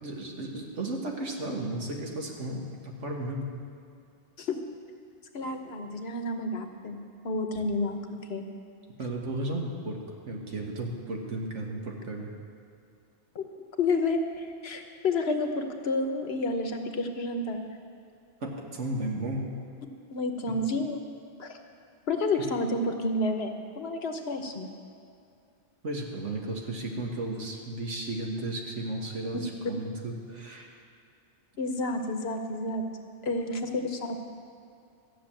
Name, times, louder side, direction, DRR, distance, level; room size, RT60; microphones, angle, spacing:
voice 1, 0.0-3.5 9.0-10.0 10.3-12.3 18.4-19.5 25.8-30.7, right 1 dB, 80° right, 0 dB, 2.0 m, -34 dB
voice 2, 5.3-7.0 7.2-8.5 13.3-13.4 13.8-17.6 20.1-21.0 21.4-21.6 22.1-24.7 31.6-32.8 33.2-34.2, left 2 dB, 60° left, 5 dB, 1.2 m, -30 dB
14.0 x 6.7 x 8.9 m, 2.5 s
omnidirectional pair, 1.2 m